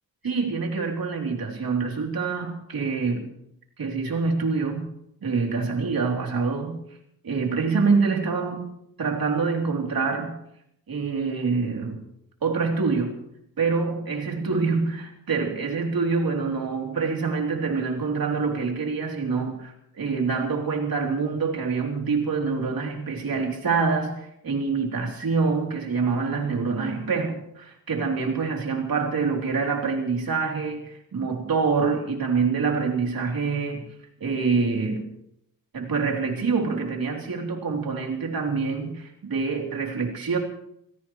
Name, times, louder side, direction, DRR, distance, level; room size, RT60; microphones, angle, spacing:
voice 1, 0.2-3.3 3.8-4.9 5.2-6.8 7.2-8.7 9.0-10.4 10.9-12.0 12.4-13.2 13.6-33.9 34.2-35.1 35.7-40.4, right 4 dB, 75° right, 1 dB, 3.4 m, -26 dB
26.0 x 16.5 x 3.2 m, 0.75 s
wide cardioid pair, 95°, 36 cm